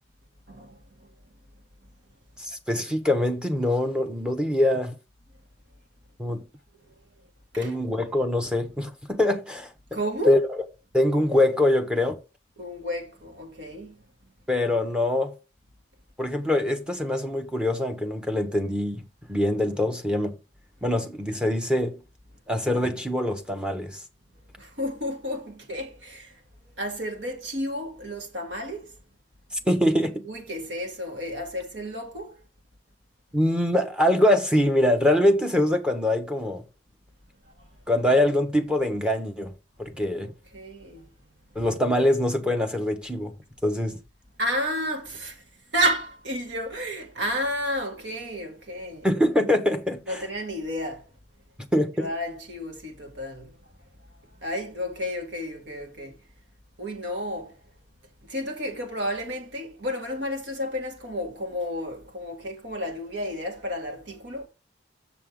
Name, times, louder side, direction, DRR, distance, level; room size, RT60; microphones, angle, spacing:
voice 1, 0.5-0.8 7.5-7.7 9.9-10.4 12.6-14.0 24.6-26.4 26.8-28.9 30.2-32.4 37.6-37.7 40.2-41.0 44.4-45.4 45.7-49.1 50.1-51.1 52.0-53.5 54.4-56.2 56.8-57.5 58.2-64.5, equal, 70° right, 2.2 m, -31 dB
voice 2, 2.4-4.9 6.2-6.5 7.6-9.7 10.3-10.6 10.9-12.2 14.5-15.3 16.2-19.0 19.3-20.4 20.8-22.0 22.5-24.0 29.7-30.3 33.3-36.6 37.9-39.5 39.8-40.3 41.5-43.3 43.6-44.0 49.0-50.2 51.7-52.1, left 1 dB, 5° right, 0.9 m, -23 dB
7.0 x 6.4 x 3.7 m
head